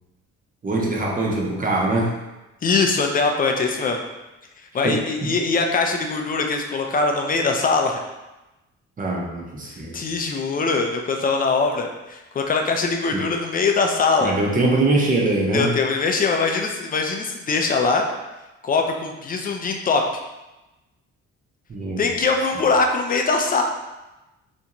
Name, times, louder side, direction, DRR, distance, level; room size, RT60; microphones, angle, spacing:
voice 1, 0.6-2.1 4.8-5.3 9.0-10.0 13.1-13.2 14.2-15.7 21.7-22.0, right 2 dB, 25° right, -2 dB, 0.6 m, -22 dB
voice 2, 2.6-4.0 4.7-8.0 9.7-14.4 15.5-18.1 18.6-20.0 22.0-23.6, left 4 dB, 30° left, 3 dB, 0.4 m, -22 dB
2.5 x 2.2 x 2.9 m, 1.0 s
cardioid pair, 90°, 30 cm